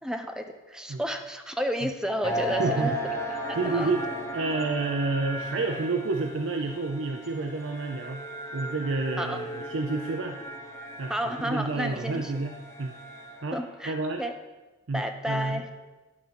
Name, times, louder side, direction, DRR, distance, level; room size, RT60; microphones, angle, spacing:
voice 1, 0.0-2.9 3.5-3.9 9.2-9.4 11.1-12.4 13.5-14.3 14.9-15.7, equal, 5° right, 5 dB, 0.6 m, -31 dB
sound 1, 2.2-13.6, equal, 15° left, 1.0 m, -36 dB
voice 2, 2.6-3.0 3.6-4.0 4.3-8.2 8.5-10.4 11.0-12.9 13.4-13.6 13.9-14.2 14.9-15.6, right 3 dB, 65° right, 4 dB, 0.6 m, -29 dB
11.0 x 3.9 x 7.0 m, 1.2 s
head